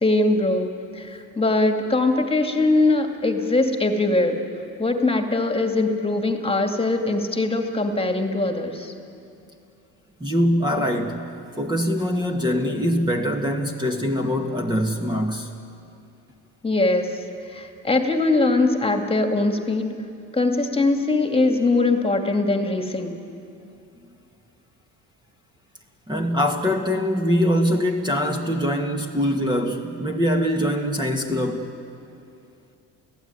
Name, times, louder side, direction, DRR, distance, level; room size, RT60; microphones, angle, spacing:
voice 1, 0.0-4.4 4.8-8.9 16.6-17.1 17.5-19.9 20.3-23.1, left 2 dB, 15° left, 4 dB, 2.5 m, -21 dB
voice 2, 10.2-11.2 11.6-15.5 26.1-31.7, equal, 10° right, 2 dB, 2.1 m, -23 dB
29.5 x 16.5 x 9.8 m, 2.5 s
cardioid pair, 100°, 35 cm